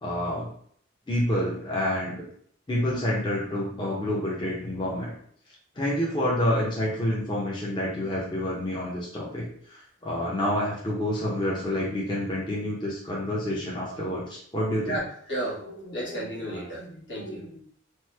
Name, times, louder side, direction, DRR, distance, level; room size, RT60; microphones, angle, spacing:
voice 1, 0.0-0.5 1.1-2.3 2.7-5.1 5.8-15.0, left 1 dB, 25° left, -5 dB, 0.6 m, -28 dB
voice 2, 14.8-17.6, right 1 dB, 70° left, -6 dB, 1.2 m, -33 dB
3.0 x 2.1 x 3.2 m, 0.62 s
head